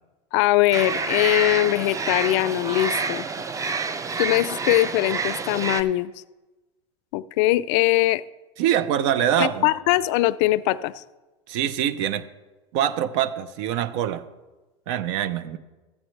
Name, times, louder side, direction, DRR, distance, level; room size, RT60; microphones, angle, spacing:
voice 1, 0.3-3.3 4.2-6.1 7.1-8.2 9.4-11.0, left 17 dB, 65° left, 18 dB, 0.4 m, -21 dB
sound 1, 0.7-5.8, right 4 dB, 20° right, 0.6 m, -28 dB
voice 2, 8.6-9.7 11.5-12.3 12.7-14.2 14.9-15.6, right 10 dB, 70° right, 14 dB, 0.7 m, -24 dB
13.5 x 8.7 x 3.2 m, 1.2 s
supercardioid pair, 105°, 16 cm